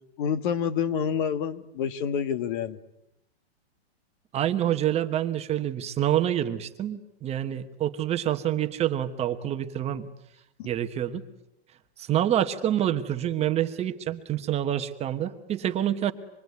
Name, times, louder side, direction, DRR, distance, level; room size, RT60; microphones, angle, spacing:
voice 1, 0.2-2.8 10.6-10.7, left 7 dB, 50° left, 13 dB, 1.7 m, -28 dB
voice 2, 4.3-10.1 10.6-11.2 12.0-16.1, right 11 dB, 20° right, 7 dB, 1.1 m, -27 dB
26.0 x 22.5 x 9.5 m, 0.86 s
hypercardioid pair, 145°, 32 cm